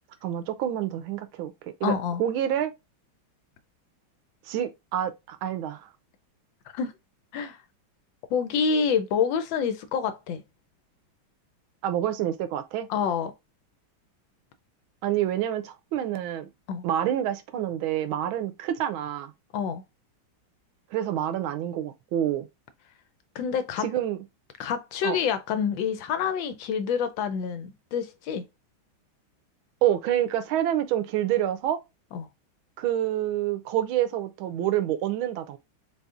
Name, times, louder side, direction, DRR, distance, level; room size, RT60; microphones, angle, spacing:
voice 1, 0.2-2.7 4.5-5.9 11.8-12.9 15.0-16.5 16.8-19.3 20.9-22.5 23.8-24.2 25.0-25.2 29.8-31.8 32.8-35.6, right 11 dB, 85° right, 1.5 m, -27 dB
voice 2, 1.8-2.2 6.7-6.9 7.3-7.6 8.3-10.4 12.9-13.3 16.7-16.8 19.5-19.8 23.3-23.9 24.6-28.4 32.1-32.3, left 6 dB, 75° left, 1.3 m, -27 dB
4.1 x 3.8 x 2.4 m
omnidirectional pair, 2.2 m